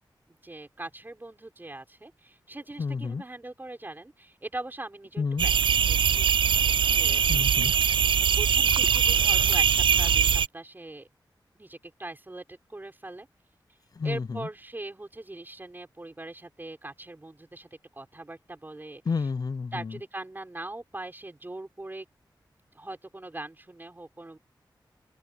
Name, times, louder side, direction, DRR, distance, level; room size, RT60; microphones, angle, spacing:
voice 1, 0.4-6.3 6.8-7.2 8.3-11.1 11.5-13.3 14.0-19.0 19.7-22.1 22.7-24.4, right 2 dB, 25° right, 5.9 m, -41 dB
voice 2, 2.8-3.2 5.2-5.5 7.3-7.7 13.9-14.5 19.1-20.0, left 5 dB, 50° left, 0.5 m, -30 dB
sound 1, 5.4-10.5, right 7 dB, 85° right, 0.4 m, -22 dB
open air
wide cardioid pair, 100°, 8 cm